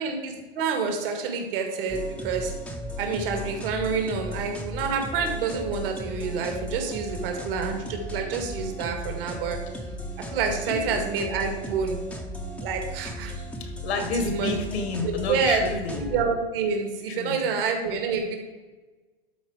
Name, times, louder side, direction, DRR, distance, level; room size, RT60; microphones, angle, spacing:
voice 1, 0.0-2.5 3.0-9.6 10.3-12.0 12.6-13.4 13.9-14.6 15.0-15.6 15.9-18.4, right 5 dB, 60° right, 4 dB, 2.1 m, -28 dB
sound 1, 1.9-16.2, equal, 5° left, 0.8 m, -36 dB
voice 2, 10.6-11.0 13.6-16.0 17.1-17.5, left 4 dB, 75° left, 6 dB, 2.0 m, -30 dB
12.5 x 4.2 x 4.8 m, 1.3 s
hypercardioid pair, 135°, 32 cm